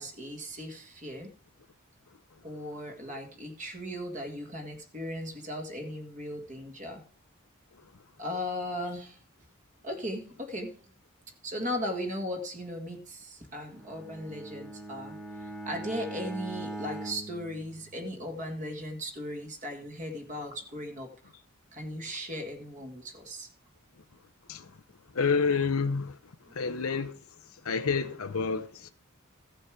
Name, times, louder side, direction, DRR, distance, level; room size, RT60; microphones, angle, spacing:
voice 1, 0.0-1.3 2.4-7.0 8.2-9.2 9.8-10.8 11.4-21.3 21.7-23.5 26.5-26.6, equal, 35° right, 1.7 m, -37 dB
Bowed string instrument, 13.7-18.4, right 1 dB, ahead, 1.5 m, -41 dB
voice 2, 25.1-26.2 26.5-27.1 27.6-28.9, left 5 dB, 90° left, 0.7 m, -28 dB
15.0 x 6.9 x 5.0 m
head